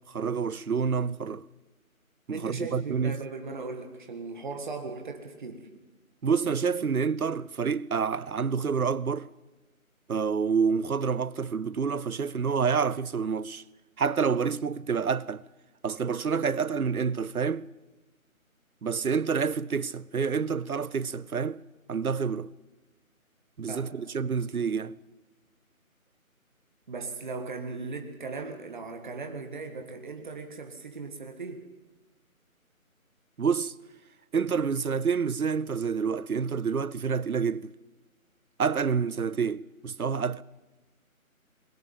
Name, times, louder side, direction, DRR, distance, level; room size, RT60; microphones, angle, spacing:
voice 1, 0.1-1.4 2.3-3.2 6.2-9.3 10.1-13.6 14.0-15.4 15.8-17.7 18.8-21.6 21.9-22.5 23.6-24.9 33.4-33.7 34.3-37.7 38.6-40.4, right 6 dB, 80° right, 0.9 m, -28 dB
voice 2, 2.3-5.7 23.7-23.9 26.9-31.6, right 4 dB, 35° right, 1.7 m, -38 dB
21.0 x 17.5 x 8.8 m
figure-of-eight pair, 160°, 43 cm